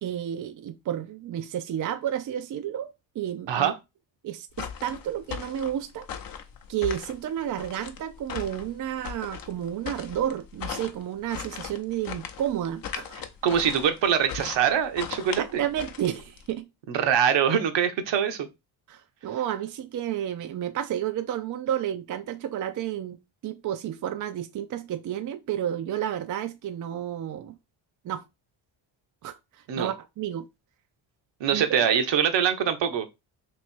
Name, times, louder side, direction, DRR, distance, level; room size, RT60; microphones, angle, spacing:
voice 1, 0.0-2.9 3.2-3.7 4.2-6.1 6.7-13.2 15.4-16.7 18.9-23.2 23.4-27.5 28.0-28.2 29.2-29.4 29.7-30.4 31.5-31.7, right 10 dB, 45° right, 0.4 m, -31 dB
sound 1, 4.5-16.5, left 8 dB, 45° left, 0.7 m, -38 dB
voice 2, 13.4-15.6 16.9-18.5 29.7-29.9 31.4-33.1, right 8 dB, 65° right, 0.9 m, -23 dB
3.0 x 2.9 x 4.3 m
cardioid pair, 100°, 47 cm